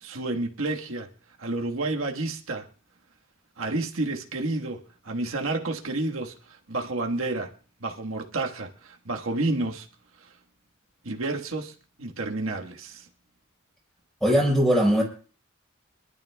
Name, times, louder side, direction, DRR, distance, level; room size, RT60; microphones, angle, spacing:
voice 1, 0.0-1.1 1.4-2.7 3.6-7.5 7.8-9.9 11.0-13.1, right 2 dB, 80° right, 1.4 m, -30 dB
voice 2, 14.2-15.0, equal, ahead, 4.9 m, -20 dB
26.0 x 12.0 x 2.3 m
head